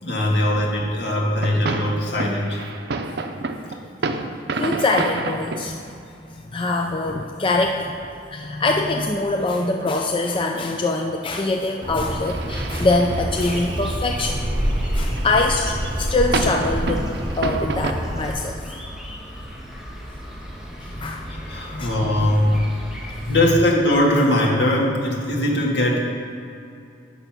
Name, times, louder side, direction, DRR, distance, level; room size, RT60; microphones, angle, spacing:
voice 1, 0.0-2.6 20.9-22.6 23.3-26.1, left 1 dB, 70° left, -2 dB, 1.9 m, -21 dB
sound 1, 1.0-5.7 6.0-6.1 7.1-7.5 8.0-8.9 9.2-9.3 9.6-9.7 9.9-10.0 10.2-10.8 11.0-13.9 14.3-14.8 15.1-17.9, right 3 dB, 65° right, 0.6 m, -30 dB
voice 2, 4.6-5.9 6.3-8.0 8.3-14.4 14.9-17.1 17.4-18.6 20.8-21.3 21.8-21.9 23.3-23.4, left 2 dB, 30° left, 2 dB, 0.5 m, -23 dB
Bird, 11.8-18.3, equal, 25° right, 1.0 m, -27 dB
sound 2, 13.4-23.4, equal, 5° right, 1.3 m, -37 dB
9.0 x 6.7 x 6.0 m, 2.6 s
head